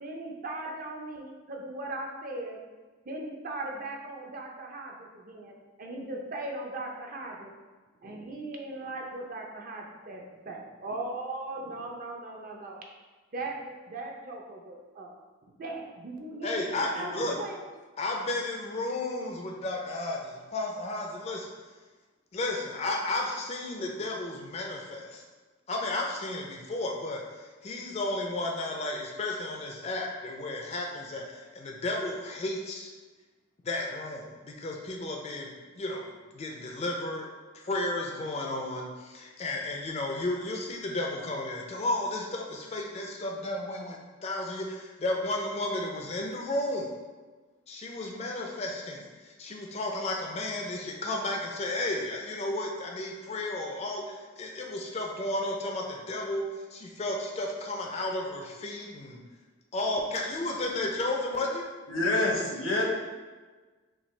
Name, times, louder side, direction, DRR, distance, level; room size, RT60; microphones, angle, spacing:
voice 1, 0.0-2.6 3.1-7.5 8.0-12.8 13.3-15.1 15.6-17.1 17.4-17.6, right 2 dB, 45° right, 0 dB, 0.6 m, -38 dB
voice 2, 16.4-17.4 18.0-21.5 22.3-25.2 25.7-32.9 33.6-37.3 37.5-46.9 47.7-56.4 56.7-59.2 59.7-61.7, left 2 dB, 30° left, 0 dB, 0.4 m, -33 dB
voice 3, 16.9-17.3 61.9-62.8, left 2 dB, 85° left, -1 dB, 1.0 m, -28 dB
5.8 x 2.3 x 3.2 m, 1.3 s
head